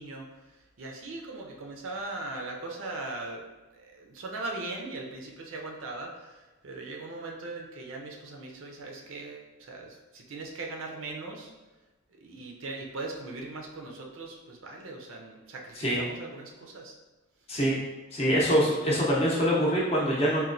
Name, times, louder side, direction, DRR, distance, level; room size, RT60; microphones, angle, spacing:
voice 1, 0.0-3.4 3.7-11.5 12.2-16.9, right 2 dB, 60° right, 0 dB, 0.5 m, -39 dB
voice 2, 18.1-20.4, equal, 25° left, -5 dB, 0.6 m, -24 dB
4.1 x 2.2 x 2.5 m, 1.1 s
head